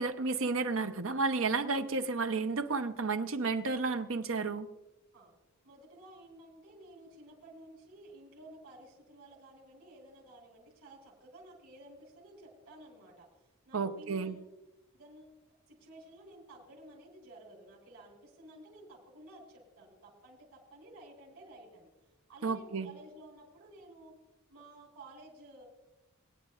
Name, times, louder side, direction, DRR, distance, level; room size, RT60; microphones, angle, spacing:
voice 1, 0.0-4.7 13.7-14.4 22.4-22.9, right 4 dB, 65° right, 8 dB, 0.7 m, -32 dB
voice 2, 5.6-13.3 13.6-14.4 14.9-15.4 15.7-21.9 22.3-24.2 24.5-25.6, right 1 dB, 90° right, -3 dB, 4.4 m, -53 dB
22.5 x 9.4 x 2.5 m, 1.0 s
head